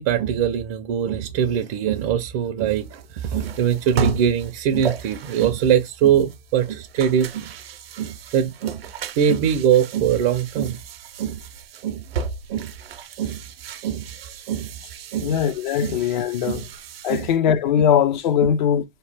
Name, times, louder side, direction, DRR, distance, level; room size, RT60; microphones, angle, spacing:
voice 1, 0.0-7.4 8.0-8.8 9.2-10.8 11.2-11.4 11.8-12.0 12.5-12.7 13.2-13.4 13.8-14.0 14.5-14.7 15.1-15.3 15.8-16.0 16.5-16.6 17.1-17.3 18.4-18.5, right 9 dB, 30° right, 0.4 m, -22 dB
sound 1, 2.7-17.4, right 5 dB, 85° right, 0.7 m, -35 dB
voice 2, 15.2-16.7 17.0-18.8, left 8 dB, 55° left, 0.5 m, -20 dB
2.9 x 2.1 x 3.2 m
hypercardioid pair, 140°, 29 cm